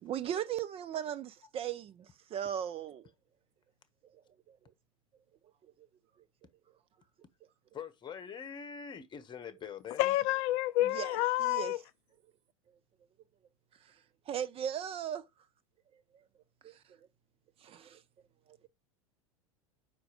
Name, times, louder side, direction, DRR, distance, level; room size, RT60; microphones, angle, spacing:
voice 1, 0.0-3.1 4.5-4.6 10.8-11.7 14.3-15.2 16.6-16.8 17.6-18.0, right 9 dB, 35° right, 0.6 m, -37 dB
voice 2, 7.7-10.1, left 7 dB, 25° left, 1.2 m, -44 dB
voice 3, 10.0-11.8, left 16 dB, 50° left, 0.4 m, -29 dB
5.2 x 4.6 x 5.0 m
hypercardioid pair, 90°, 17 cm